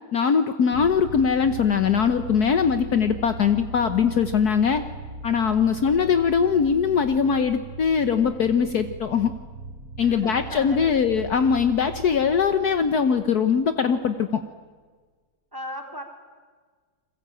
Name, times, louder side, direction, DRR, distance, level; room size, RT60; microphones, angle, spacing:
voice 1, 0.1-4.8 5.2-9.3 10.0-14.4, left 6 dB, 60° left, 9 dB, 1.5 m, -21 dB
sound 1, 0.7-14.1, right 2 dB, 50° right, 2.2 m, -39 dB
voice 2, 10.0-10.9 15.5-16.0, equal, 10° right, 3 dB, 3.6 m, -37 dB
30.0 x 21.5 x 9.0 m, 1.5 s
omnidirectional pair, 2.0 m